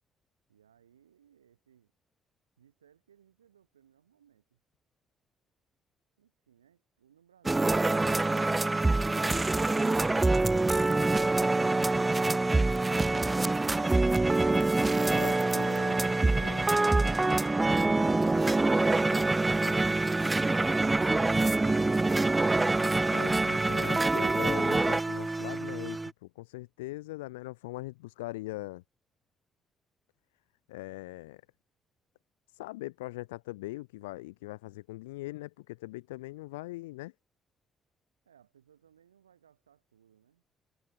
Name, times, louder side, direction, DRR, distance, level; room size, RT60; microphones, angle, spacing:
voice 1, 0.5-1.9 2.6-4.6 6.2-9.0 38.2-40.4, right 9 dB, 80° right, 3.9 m, -65 dB
sound 1, 7.5-26.1, right 2 dB, 20° right, 0.3 m, -25 dB
voice 2, 15.1-16.7 23.1-28.8 30.7-31.4 32.5-37.1, left 20 dB, 75° left, 0.4 m, -41 dB
figure-of-eight pair, 45°, 0 cm